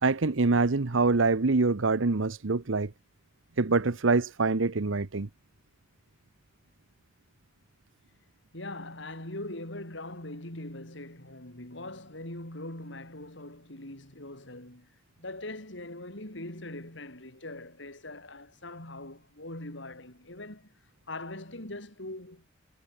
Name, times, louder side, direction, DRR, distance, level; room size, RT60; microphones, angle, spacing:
voice 1, 0.0-2.9 3.6-5.3, right 3 dB, 85° right, 1.0 m, -25 dB
voice 2, 8.5-14.9 15.2-20.7 21.1-22.5, left 1 dB, 70° left, 6.0 m, -41 dB
head